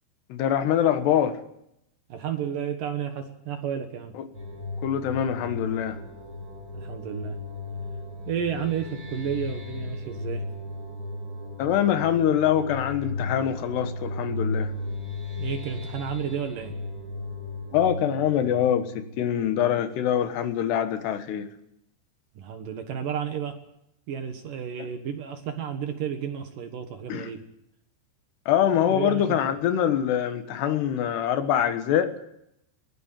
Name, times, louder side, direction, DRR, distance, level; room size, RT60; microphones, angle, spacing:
voice 1, 0.3-1.4 4.8-6.0 11.6-14.7 17.7-21.5 27.1-27.3 28.5-32.1, left 10 dB, 70° left, 3.2 m, -24 dB
voice 2, 2.1-4.1 6.7-7.4 8.3-10.4 15.4-16.8 22.4-23.6 24.1-27.4 28.9-29.6, right 8 dB, 60° right, 2.5 m, -32 dB
sound 1, 4.3-19.8, left 2 dB, 25° right, 4.2 m, -35 dB
21.5 x 17.5 x 7.5 m
omnidirectional pair, 5.5 m